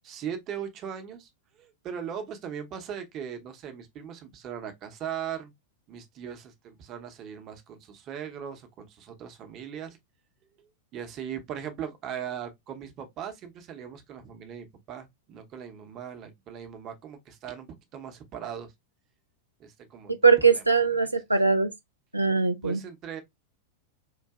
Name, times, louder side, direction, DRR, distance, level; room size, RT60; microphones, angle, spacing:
voice 1, 0.0-1.3 1.6-5.5 5.9-10.0 10.9-17.7 17.9-18.7 19.6-20.6 21.0-21.1 22.6-23.2, right 8 dB, 35° right, 0.8 m, -39 dB
voice 2, 20.2-21.7 22.1-22.8, right 5 dB, 85° right, 0.3 m, -21 dB
4.6 x 2.6 x 2.3 m
figure-of-eight pair, 90°, 0 cm